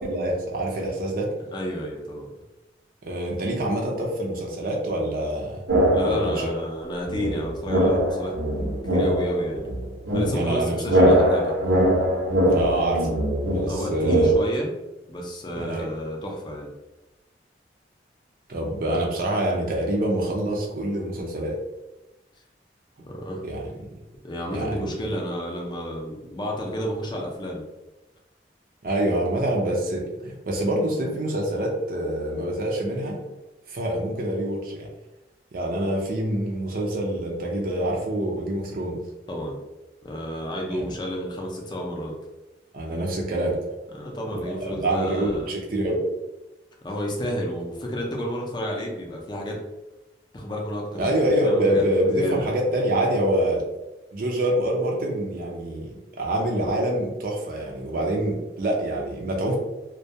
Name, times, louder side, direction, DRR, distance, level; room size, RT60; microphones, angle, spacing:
voice 1, 0.0-1.3 3.0-5.6 6.0-6.5 10.3-11.2 12.5-13.1 13.5-14.3 15.6-15.9 18.5-21.6 23.4-23.7 24.5-24.9 28.8-33.2 33.7-34.9 35.5-39.0 40.7-40.9 42.7-43.6 44.4-46.1 51.0-53.6 54.1-59.6, right 1 dB, 50° right, -1 dB, 0.4 m, -26 dB
voice 2, 1.5-2.3 5.9-9.6 10.1-11.5 13.7-14.7 15.1-16.7 23.1-23.4 24.2-27.6 39.3-39.6 40.0-42.1 43.9-45.5 46.8-49.6 50.3-51.8 52.1-52.5, equal, 25° left, -1 dB, 0.4 m, -31 dB
sound 1, 5.7-6.5 7.1-14.3, equal, 85° right, 0.8 m, -22 dB
2.2 x 2.2 x 2.7 m, 1.0 s
head